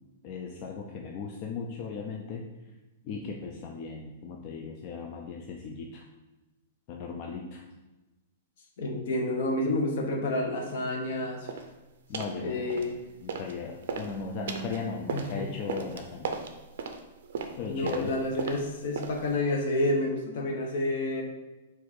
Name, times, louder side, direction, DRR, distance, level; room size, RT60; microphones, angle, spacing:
voice 1, 0.2-2.4 3.0-6.1 6.9-7.6 12.1-12.8 13.2-16.4 17.6-18.1, left 5 dB, 30° left, 0 dB, 0.3 m, -37 dB
voice 2, 8.8-11.5 12.4-13.0 15.1-15.4 17.7-21.2, left 1 dB, 55° left, 2 dB, 0.8 m, -29 dB
sound 1, 11.5-11.7 12.1-12.4 12.7-13.5 13.8-19.4, right 5 dB, 65° right, 0.5 m, -36 dB
4.4 x 2.5 x 4.3 m, 1.1 s
hypercardioid pair, 170°, 0 cm